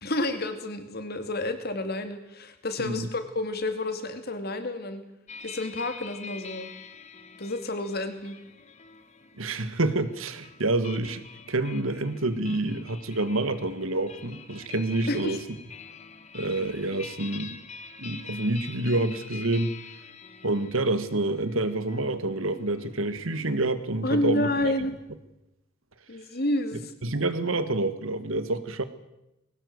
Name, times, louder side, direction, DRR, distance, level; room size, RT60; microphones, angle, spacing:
voice 1, 0.0-5.0 5.4-6.7 7.4-8.4 15.1-15.4 24.0-24.9 26.1-26.9, left 1 dB, 50° left, 8 dB, 2.6 m, -30 dB
sound 1, 5.3-23.5, left 5 dB, 35° left, 1.6 m, -46 dB
voice 2, 9.4-15.4 16.3-17.6 18.0-19.7 20.4-24.7 27.0-28.8, right 2 dB, 80° right, 12 dB, 1.7 m, -28 dB
21.0 x 18.0 x 8.0 m, 0.92 s
head